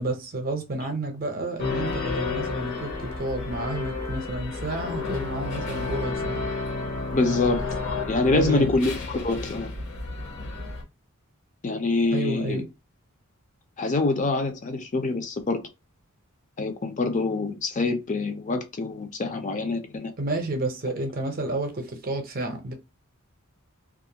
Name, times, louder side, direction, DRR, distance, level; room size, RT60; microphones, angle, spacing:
voice 1, 0.0-6.4 7.2-7.5 8.3-8.7 12.1-12.7 20.2-22.7, right 1 dB, 45° right, 0.6 m, -30 dB
sound 1, 1.6-10.8, left 3 dB, 60° left, 0.8 m, -31 dB
voice 2, 7.1-9.7 11.6-12.6 13.8-15.7 16.6-20.1, left 3 dB, 35° left, 0.5 m, -25 dB
2.4 x 2.2 x 2.7 m
head